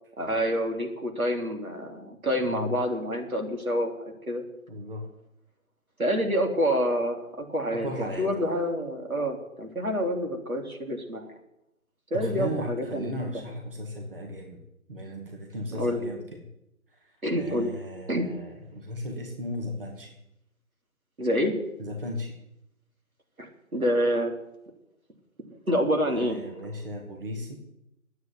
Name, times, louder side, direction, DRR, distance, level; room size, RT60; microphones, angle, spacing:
voice 1, 0.2-4.4 6.0-11.3 12.1-13.1 15.7-16.0 17.2-17.7 18.1-18.3 21.2-21.6 23.4-24.3 25.7-26.4, equal, 80° right, 3 dB, 3.4 m, -27 dB
voice 2, 2.4-2.8 4.7-5.1 7.7-8.5 12.1-14.6 14.9-16.4 16.9-20.1 21.8-22.4 26.1-27.6, equal, 40° right, 2 dB, 2.3 m, -36 dB
10.5 x 9.4 x 9.2 m, 0.84 s
figure-of-eight pair, 165°, 42 cm